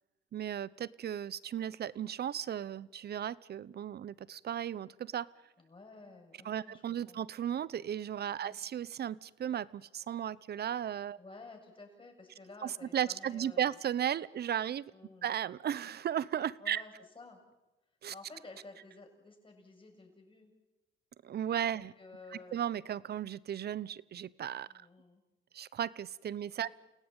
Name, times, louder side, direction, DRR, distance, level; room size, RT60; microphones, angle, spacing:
voice 1, 0.3-5.3 6.4-11.2 12.6-14.9 15.2-16.8 18.0-18.1 21.2-21.9 22.5-24.9 25.5-26.7, right 10 dB, 55° right, 20 dB, 0.8 m, -35 dB
voice 2, 5.6-7.2 8.4-8.6 11.2-13.8 14.9-15.3 16.6-17.4 18.1-20.5 21.7-22.6 24.7-25.2 26.6-26.7, left 3 dB, 25° left, 3 dB, 7.2 m, -53 dB
29.5 x 17.5 x 9.0 m, 1.0 s
cardioid pair, 90°, 20 cm